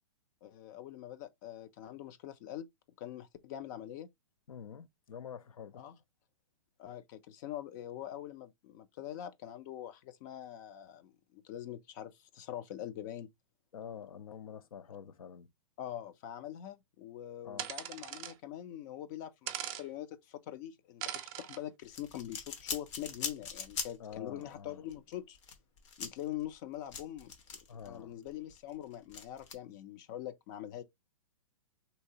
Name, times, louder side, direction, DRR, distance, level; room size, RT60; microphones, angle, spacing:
voice 1, 0.4-2.7 3.0-4.1 5.8-5.9 6.8-13.3 15.8-25.4 26.0-27.3 27.8-30.8, left 12 dB, 35° left, 0.4 m, -44 dB
voice 2, 4.5-5.8 13.7-15.5 17.4-17.6 24.0-24.9 27.7-28.2, left 8 dB, 85° left, 0.6 m, -47 dB
sound 1, 17.6-18.3 19.5-19.8 21.0-21.6, right 11 dB, 30° right, 0.4 m, -40 dB
sound 2, 21.8-24.2 24.4-24.5 24.9-27.9 28.3-29.5, left 6 dB, 60° left, 1.0 m, -41 dB
3.2 x 2.8 x 2.7 m
hypercardioid pair, 145°, 17 cm